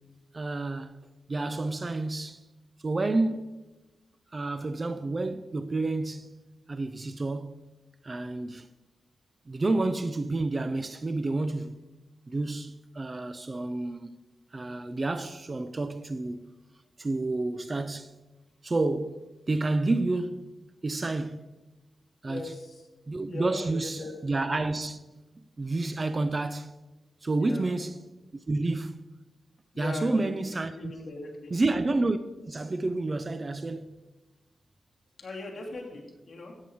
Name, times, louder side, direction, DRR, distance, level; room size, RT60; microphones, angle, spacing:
voice 1, 0.3-1.0 1.3-2.4 2.8-3.5 4.3-6.4 6.7-7.6 8.0-8.7 9.5-11.9 12.3-14.2 14.5-16.5 17.0-18.1 18.6-20.5 20.8-21.5 22.2-22.5 23.1-25.0 25.6-26.7 27.2-28.0 28.5-29.0 29.8-30.9 31.5-32.2 32.5-33.9, right 2 dB, 30° right, 0.5 m, -29 dB
voice 2, 22.2-22.8 23.2-24.1 25.6-25.7 27.4-27.7 29.7-30.3 30.7-31.5 35.2-36.5, left 2 dB, 45° left, 2.9 m, -39 dB
13.0 x 8.7 x 4.7 m
wide cardioid pair, 110°, 0 cm